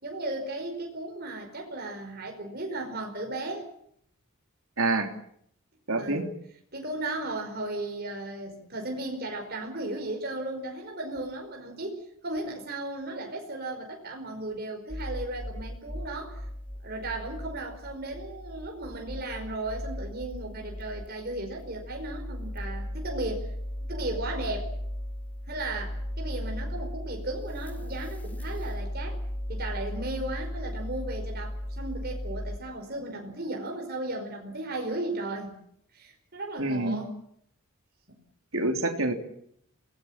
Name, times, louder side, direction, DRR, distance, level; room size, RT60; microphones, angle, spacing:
voice 1, 0.0-3.7 6.0-6.3 6.7-16.5 16.8-23.5 23.9-24.7 25.5-29.2 29.5-35.6 35.9-37.1 38.1-38.2, right 2 dB, 45° right, 2 dB, 5.1 m, -35 dB
voice 2, 4.8-5.1 5.9-6.2 36.6-37.0 38.5-39.1, right 2 dB, 65° right, 4 dB, 3.4 m, -26 dB
sound 1, 14.9-32.6, equal, 5° left, 2.1 m, -36 dB
28.5 x 19.0 x 7.4 m, 0.69 s
head